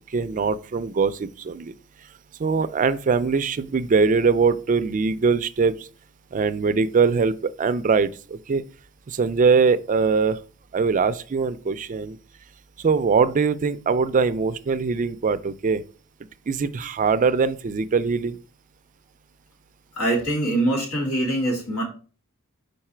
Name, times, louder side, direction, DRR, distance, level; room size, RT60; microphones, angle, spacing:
voice 1, 0.1-1.7 2.4-5.9 6.3-8.6 9.1-10.4 10.7-12.2 12.8-15.8 16.5-18.4, right 5 dB, 35° right, 0.4 m, -22 dB
voice 2, 20.0-21.8, right 1 dB, 90° left, 2.9 m, -23 dB
5.3 x 4.8 x 4.4 m
head